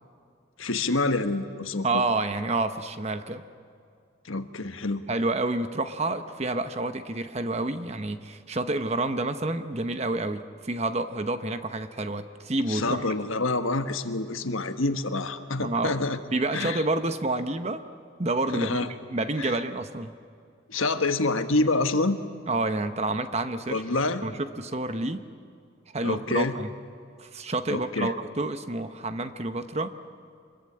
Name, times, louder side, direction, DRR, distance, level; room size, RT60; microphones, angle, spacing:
voice 1, 0.6-2.0 4.3-5.0 12.7-16.2 16.5-16.8 18.5-18.9 19.4-19.5 20.7-22.2 23.7-24.2 26.0-26.6 27.7-28.1, left 2 dB, 85° left, 8 dB, 1.5 m, -27 dB
voice 2, 1.8-3.4 5.1-13.1 15.6-16.0 16.3-17.8 18.2-20.1 22.5-25.2 25.9-26.7 27.2-29.9, right 2 dB, 30° right, 9 dB, 0.9 m, -29 dB
25.5 x 22.0 x 8.6 m, 2.4 s
head